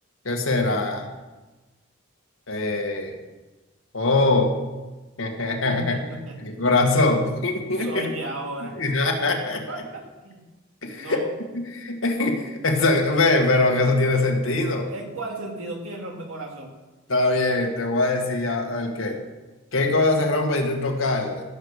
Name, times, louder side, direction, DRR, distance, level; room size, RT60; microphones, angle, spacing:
voice 1, 0.3-1.1 2.5-3.1 3.9-4.5 5.2-6.0 6.4-8.1 8.6-9.6 10.8-11.2 11.5-14.9 17.1-19.2 19.7-21.4, left 2 dB, 80° left, 2 dB, 1.9 m, -22 dB
voice 2, 5.7-6.4 6.7-6.8 7.7-8.8 9.7-10.4 11.0-11.3 14.9-16.7, right 1 dB, 85° right, 1 dB, 2.7 m, -35 dB
16.0 x 7.0 x 6.5 m, 1.2 s
head